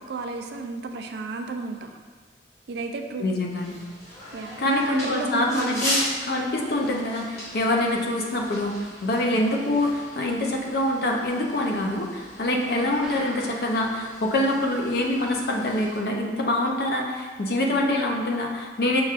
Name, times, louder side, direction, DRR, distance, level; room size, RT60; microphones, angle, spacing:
voice 1, 0.0-1.9 2.7-3.3 4.3-6.0 12.5-12.9, right 3 dB, 65° right, 4 dB, 0.3 m, -32 dB
voice 2, 3.2-3.8 4.6-19.0, left 1 dB, 55° left, 0 dB, 0.5 m, -25 dB
sound 1, 3.5-16.0, equal, 40° left, 1.4 m, -37 dB
sound 2, 13.0-13.9 14.3-14.4 14.6-14.7 15.2-15.3, equal, 5° right, 0.5 m, -40 dB
5.8 x 2.3 x 2.4 m, 1.4 s
head